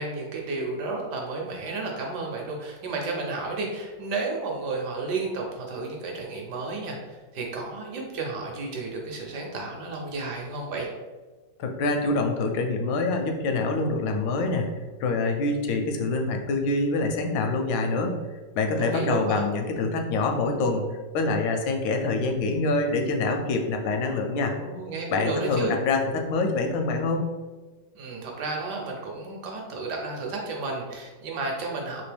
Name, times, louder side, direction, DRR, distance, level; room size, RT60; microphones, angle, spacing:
voice 1, 0.0-10.9 18.8-19.4 24.4-25.8 27.9-32.0, right 3 dB, 70° right, 0 dB, 1.1 m, -32 dB
voice 2, 11.6-18.2 18.6-20.9 21.1-24.5 25.1-27.2, left 3 dB, 80° left, 4 dB, 1.3 m, -25 dB
3.4 x 2.7 x 3.3 m, 1.3 s
omnidirectional pair, 2.1 m